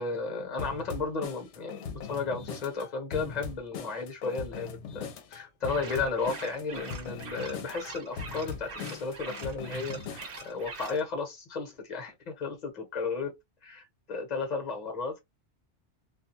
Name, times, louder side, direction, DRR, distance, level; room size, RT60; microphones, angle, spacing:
voice 1, 0.0-13.3 13.6-15.2, left 4 dB, 40° left, 1.0 m, -34 dB
sound 1, 0.6-10.5, left 6 dB, 80° left, 0.9 m, -40 dB
sound 2, 5.6-11.0, right 4 dB, 55° right, 1.0 m, -44 dB
2.4 x 2.2 x 2.7 m
omnidirectional pair, 1.2 m